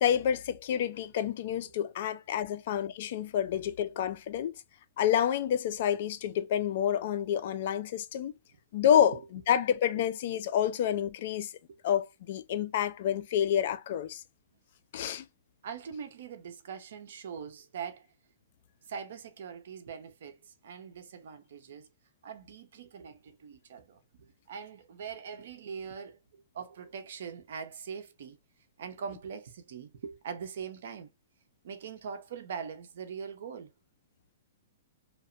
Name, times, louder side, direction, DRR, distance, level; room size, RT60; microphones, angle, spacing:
voice 1, 0.0-4.5 5.0-8.3 8.7-9.2 9.5-11.5 11.8-14.2 14.9-15.2, left 9 dB, 50° left, 0.4 m, -28 dB
voice 2, 15.6-18.1 18.8-21.9 22.2-28.4 28.8-31.1 31.6-33.7, right 6 dB, 65° right, 0.6 m, -42 dB
2.8 x 2.1 x 2.4 m
hypercardioid pair, 155°, 0 cm